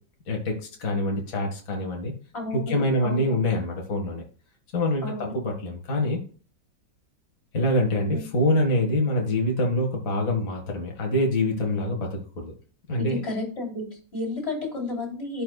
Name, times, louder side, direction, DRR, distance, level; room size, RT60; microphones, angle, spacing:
voice 1, 0.3-2.1 2.5-4.2 4.7-6.2 7.5-12.5 12.9-13.2, left 1 dB, 50° left, 1 dB, 2.1 m, -25 dB
voice 2, 2.3-3.4 5.0-5.4 8.1-8.2 13.0-15.4, left 2 dB, 35° left, 1 dB, 3.7 m, -32 dB
11.5 x 5.4 x 2.3 m, 0.39 s
omnidirectional pair, 2.0 m